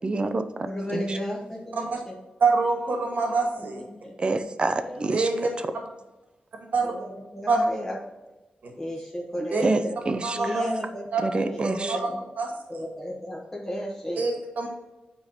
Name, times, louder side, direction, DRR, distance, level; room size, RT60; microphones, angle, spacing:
voice 1, 0.0-1.2 4.2-5.3 5.6-5.7 9.6-10.6 11.2-12.0, right 3 dB, 35° right, 9 dB, 0.6 m, -27 dB
voice 2, 0.6-2.1 3.1-4.1 4.8-5.6 6.8-8.0 8.2-8.4 8.8-9.9 10.3-11.0 11.3-12.3 12.7-14.2, equal, 10° left, -3 dB, 1.3 m, -34 dB
voice 3, 2.4-3.8 5.1-5.5 6.7-6.9 7.5-7.6 8.6-8.7 9.5-9.6 10.2-10.7 11.1-11.2 11.9-12.1 12.4-12.5 14.2-14.7, right 4 dB, 70° right, 1 dB, 1.8 m, -25 dB
9.0 x 3.9 x 5.0 m, 1.1 s
wide cardioid pair, 120°, 3 cm